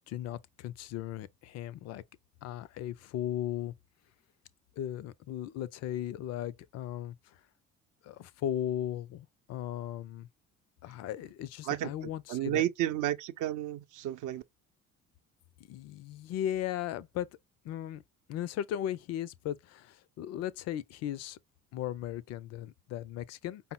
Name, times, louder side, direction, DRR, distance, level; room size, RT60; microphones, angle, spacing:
voice 1, 0.1-2.0 2.4-3.7 4.8-7.4 8.0-10.3 10.8-12.6 15.6-17.3 17.6-18.0 18.3-21.4 21.7-23.7, left 11 dB, 40° left, 0.5 m, -37 dB
voice 2, 12.3-14.4, right 13 dB, 45° right, 0.7 m, -32 dB
5.3 x 2.0 x 4.2 m
figure-of-eight pair, 50°, 42 cm